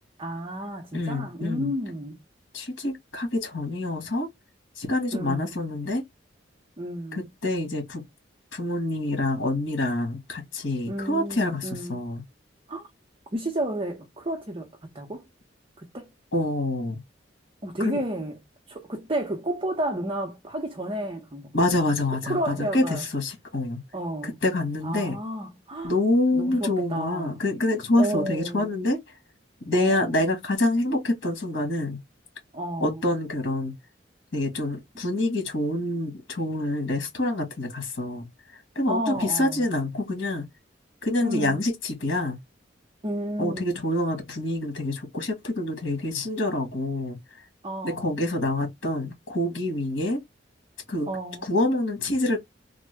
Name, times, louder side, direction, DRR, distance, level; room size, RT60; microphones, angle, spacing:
voice 1, 0.2-2.2 5.1-5.6 6.8-7.3 10.9-12.0 12.7-12.9 13.3-15.3 15.8-16.1 17.6-18.4 18.7-21.9 22.3-23.0 23.9-24.4 24.8-26.0 26.3-27.4 28.0-28.8 29.7-30.2 32.5-33.0 38.9-39.7 41.2-41.7 43.0-43.8 47.6-48.2 51.1-51.5, right 1 dB, 30° right, 0.7 m, -32 dB
voice 2, 0.9-1.7 2.5-4.3 4.8-6.0 7.1-8.0 8.5-12.2 16.3-17.0 17.8-18.0 21.5-23.8 24.2-25.2 25.8-29.0 29.7-32.0 32.8-33.7 34.3-38.3 38.7-40.4 41.0-42.4 43.4-47.2 47.8-50.2 50.9-51.1 51.4-52.4, left 1 dB, 80° left, 1.5 m, -26 dB
3.6 x 2.1 x 3.3 m
head